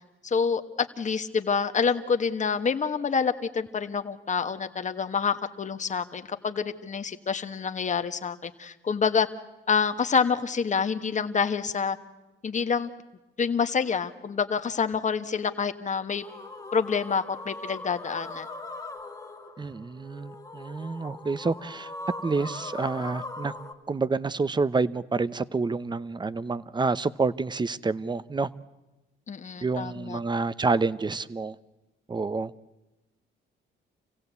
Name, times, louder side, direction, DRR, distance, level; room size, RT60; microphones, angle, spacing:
voice 1, 0.2-9.3 9.7-12.0 12.4-12.9 13.4-16.2 16.7-18.5 29.3-30.2, left 6 dB, 40° left, 9 dB, 1.3 m, -27 dB
sound 1, 16.2-23.7, left 2 dB, 15° left, 1.7 m, -40 dB
voice 2, 19.6-21.9 22.2-23.5 23.9-28.5 29.6-31.5 32.1-32.5, right 4 dB, 20° right, 17 dB, 0.7 m, -28 dB
27.0 x 16.5 x 8.2 m, 1.1 s
cardioid pair, 90°, 20 cm